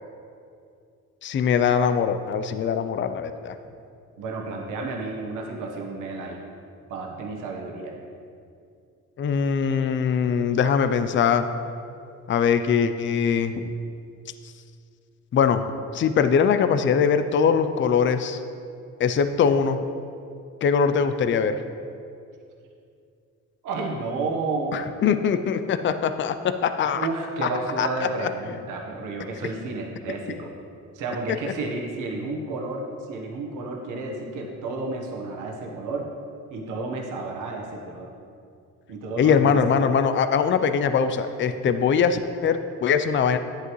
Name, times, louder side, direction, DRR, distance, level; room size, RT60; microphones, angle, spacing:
voice 1, 1.2-3.6 9.2-11.5 12.3-13.7 15.3-15.6 15.9-18.4 19.0-19.8 20.6-21.6 24.7-27.1 27.4-27.5 27.8-27.9 28.2-28.3 39.2-43.4, left 6 dB, 40° left, 10 dB, 0.5 m, -22 dB
voice 2, 4.2-6.4 6.9-8.0 23.6-24.8 26.9-30.5 30.9-36.1 36.5-38.1 38.9-39.9, right 3 dB, 85° right, 0 dB, 1.3 m, -31 dB
10.0 x 8.0 x 3.1 m, 2.5 s
cardioid pair, 90°, 30 cm